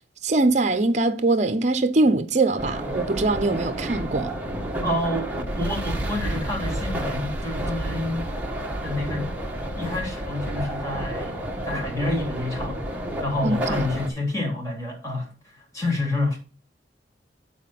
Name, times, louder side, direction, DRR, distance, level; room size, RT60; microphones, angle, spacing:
voice 1, 0.2-4.3 13.4-13.8, right 2 dB, 40° right, 0.7 m, -22 dB
sound 1, 2.6-14.1, right 1 dB, 10° right, 1.3 m, -30 dB
voice 2, 4.8-8.3 8.8-9.3 9.7-11.3 11.6-12.9 13.2-16.4, left 2 dB, 20° left, 2.9 m, -28 dB
9.5 x 4.2 x 5.8 m
head